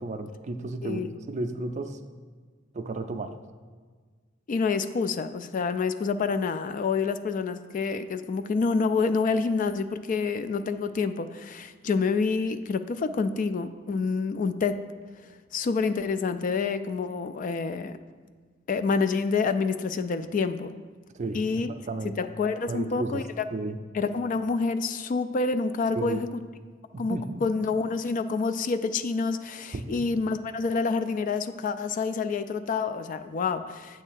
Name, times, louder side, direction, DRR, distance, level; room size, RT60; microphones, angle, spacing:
voice 1, 0.0-2.0 2.7-3.3 21.1-22.1 22.7-23.2 23.5-23.8 26.0-26.2 26.9-27.4 29.7-30.0, right 2 dB, 40° right, 8 dB, 0.4 m, -33 dB
voice 2, 4.5-14.8 15.5-18.0 18.7-20.8 21.3-21.8 22.0-23.5 23.9-26.3 27.0-34.0, left 4 dB, 45° left, 11 dB, 0.3 m, -28 dB
8.4 x 3.3 x 6.3 m, 1.5 s
head